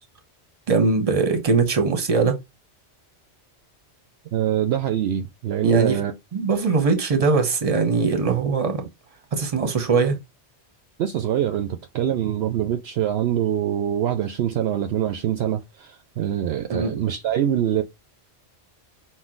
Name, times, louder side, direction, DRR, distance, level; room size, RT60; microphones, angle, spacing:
voice 1, 0.7-2.4 5.6-6.0 6.3-8.8 9.3-10.2 16.7-16.9, right 4 dB, 35° right, 0.9 m, -21 dB
voice 2, 4.3-6.1 11.0-17.8, right 10 dB, 70° right, 0.8 m, -24 dB
6.1 x 2.2 x 3.7 m
omnidirectional pair, 1.2 m